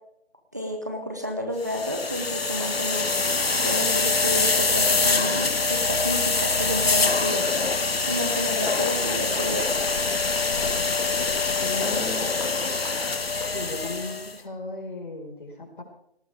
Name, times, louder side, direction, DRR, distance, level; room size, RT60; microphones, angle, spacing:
voice 1, 0.5-7.5 8.1-9.7, equal, 20° right, 2 dB, 0.9 m, -31 dB
sound 1, 1.6-14.3, left 4 dB, 75° left, 1.7 m, -24 dB
sound 2, 7.4-7.9 8.3-13.6, left 4 dB, 30° left, 2.7 m, -42 dB
voice 2, 11.6-12.3 13.5-15.8, left 2 dB, 55° left, 1 dB, 5.0 m, -35 dB
18.0 x 18.0 x 3.5 m, 0.73 s
figure-of-eight pair, 170°, 30 cm